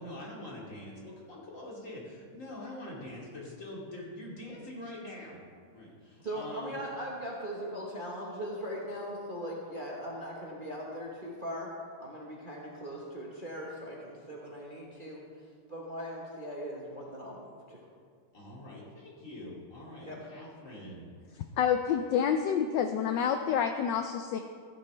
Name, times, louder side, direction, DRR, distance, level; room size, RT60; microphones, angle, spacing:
voice 1, 0.0-5.4 5.7-6.8 18.3-21.1, left 1 dB, 35° left, -5 dB, 2.8 m, -44 dB
voice 2, 6.2-11.7 12.0-15.2 15.7-17.9 20.1-20.2, equal, 30° right, -4 dB, 1.1 m, -39 dB
voice 3, 21.6-24.4, left 8 dB, 75° left, 7 dB, 1.0 m, -28 dB
15.5 x 9.9 x 3.3 m, 2.1 s
omnidirectional pair, 2.4 m